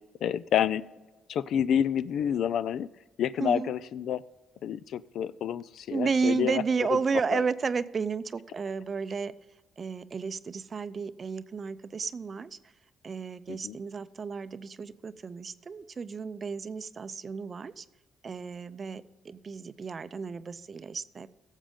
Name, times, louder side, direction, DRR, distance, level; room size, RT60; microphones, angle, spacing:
voice 1, 0.2-0.8 1.3-2.9 3.2-4.2 4.6-6.6 7.3-7.4 13.6-13.8, left 9 dB, 70° left, 17 dB, 0.4 m, -28 dB
voice 2, 3.4-3.7 5.9-9.3 9.8-12.7 13.0-17.9 18.2-21.3, right 5 dB, 40° right, 14 dB, 0.5 m, -32 dB
16.5 x 7.3 x 3.7 m, 1.2 s
cardioid pair, 90°, 0 cm